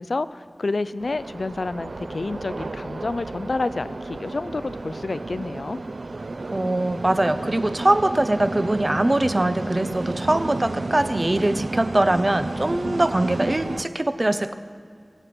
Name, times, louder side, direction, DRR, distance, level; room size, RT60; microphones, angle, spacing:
voice 1, 0.0-5.8 12.8-13.0, left 3 dB, 85° left, 15 dB, 0.4 m, -29 dB
sound 1, 1.0-13.8, right 3 dB, 90° right, 0.4 m, -32 dB
voice 2, 6.5-14.5, right 1 dB, 40° right, 11 dB, 0.7 m, -22 dB
24.0 x 8.0 x 5.9 m, 2.3 s
wide cardioid pair, 45°, 0 cm